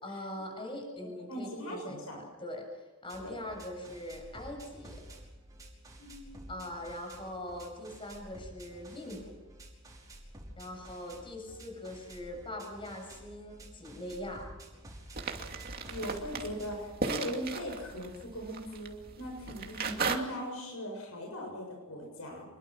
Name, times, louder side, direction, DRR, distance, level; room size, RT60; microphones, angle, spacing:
voice 1, 0.0-5.0 6.5-9.4 10.6-14.5, left 1 dB, 25° left, 2 dB, 7.4 m, -42 dB
voice 2, 1.3-2.2 3.2-3.4 6.0-6.5 15.9-22.4, equal, 85° left, 1 dB, 7.2 m, -40 dB
sound 1, 3.1-16.7, right 1 dB, 15° right, 5.6 m, -51 dB
sound 2, 15.2-20.2, right 4 dB, 45° right, 2.6 m, -37 dB
28.0 x 22.5 x 6.2 m, 1.2 s
head